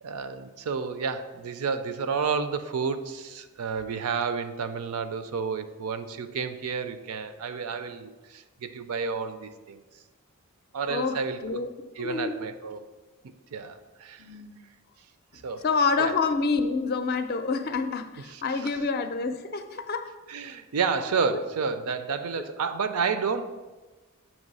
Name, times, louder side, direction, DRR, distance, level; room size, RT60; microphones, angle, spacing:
voice 1, 0.0-9.8 10.7-11.6 12.0-12.9 13.5-14.2 15.4-15.6 16.0-16.2 18.3-18.8 20.3-23.4, right 5 dB, 85° right, 10 dB, 0.5 m, -30 dB
voice 2, 10.9-11.7 12.0-12.4 14.2-14.6 15.6-20.1 21.3-21.4 22.4-22.5, left 4 dB, 45° left, 8 dB, 0.4 m, -28 dB
8.2 x 3.1 x 5.3 m, 1.2 s
head